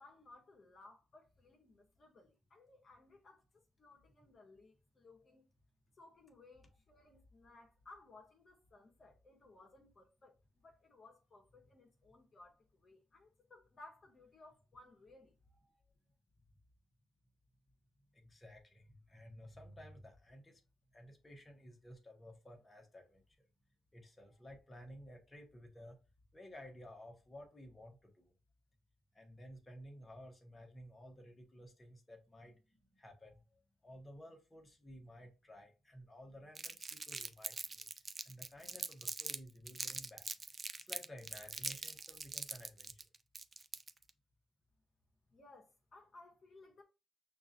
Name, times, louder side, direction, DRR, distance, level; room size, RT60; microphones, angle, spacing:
voice 1, 0.0-5.5 6.0-15.4 45.3-46.8, left 2 dB, 40° left, 1.1 m, -60 dB
voice 2, 18.1-20.6 20.9-23.2 23.9-26.0 26.3-28.3 29.1-37.9 38.2-40.3 40.8-43.0, equal, 20° left, 1.2 m, -55 dB
Crumpling crinkling, 36.5-39.4 39.7-44.1, right 4 dB, 30° right, 0.4 m, -43 dB
5.9 x 2.5 x 2.7 m
cardioid pair, 90°, 0 cm